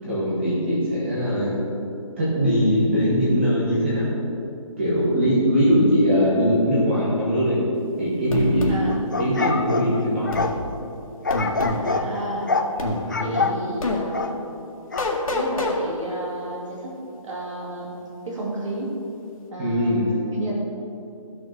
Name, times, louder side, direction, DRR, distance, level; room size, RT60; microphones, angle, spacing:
voice 1, 0.1-1.5 2.2-4.1 4.8-7.6 8.0-8.7 9.2-10.3 13.0-13.4 19.6-20.0, equal, 20° right, -9 dB, 1.7 m, -21 dB
sound 1, 8.3-8.8 10.3-10.5 11.3-11.8 12.8-13.0 13.8-14.0 15.0-15.8, left 2 dB, 85° left, 1.8 m, -26 dB
sound 2, 8.9-10.6 11.2-12.1 12.5-12.7 13.1-13.6 14.1-14.4 14.9-15.1, left 4 dB, 35° left, 0.4 m, -25 dB
voice 2, 11.8-12.5 13.2-14.3 15.3-18.0 18.2-19.0 19.5-20.5, right 1 dB, 60° right, -4 dB, 2.6 m, -32 dB
13.5 x 6.3 x 4.3 m, 2.8 s
hypercardioid pair, 180°, 18 cm